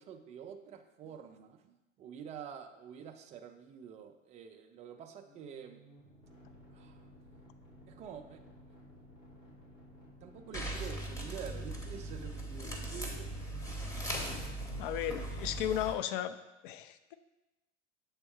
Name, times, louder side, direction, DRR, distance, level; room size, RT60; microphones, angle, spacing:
voice 1, 0.0-5.8 6.7-7.0 7.9-8.4 10.2-13.3, right 8 dB, 20° right, 6 dB, 0.4 m, -47 dB
sound 1, 5.2-13.8, equal, 80° left, 2.0 m, -57 dB
sound 2, 10.5-15.9, right 1 dB, 10° left, 0.9 m, -39 dB
voice 2, 14.8-16.3 16.6-17.1, left 11 dB, 45° left, 11 dB, 0.5 m, -35 dB
7.2 x 3.5 x 4.4 m, 1.0 s
figure-of-eight pair, 90°, 38 cm